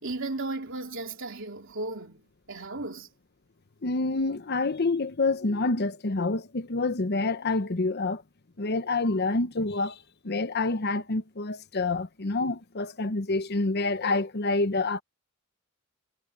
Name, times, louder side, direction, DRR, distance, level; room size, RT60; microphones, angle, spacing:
voice 1, 0.0-3.1, right 2 dB, 65° right, 3.6 m, -35 dB
voice 2, 3.8-8.2 8.6-10.0 10.2-15.0, left 3 dB, 50° left, 0.9 m, -27 dB
head